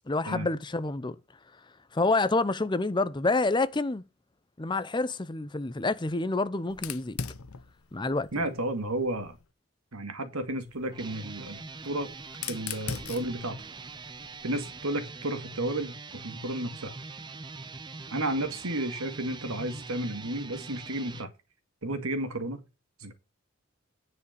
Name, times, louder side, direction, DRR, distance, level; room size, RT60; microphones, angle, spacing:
voice 1, 0.1-1.2 1.9-4.0 4.6-7.2 7.9-8.3, left 3 dB, 20° left, 0.6 m, -28 dB
Fire, 6.7-9.5 10.6-14.8, left 6 dB, 85° left, 0.8 m, -42 dB
voice 2, 8.3-9.4 9.9-12.1 12.5-13.6 14.4-16.0 16.2-16.9 18.1-21.3 21.8-22.7 23.0-23.1, right 1 dB, 90° right, 2.2 m, -32 dB
sound 1, 10.9-21.3, right 4 dB, 20° right, 0.6 m, -43 dB
9.9 x 4.8 x 6.8 m
head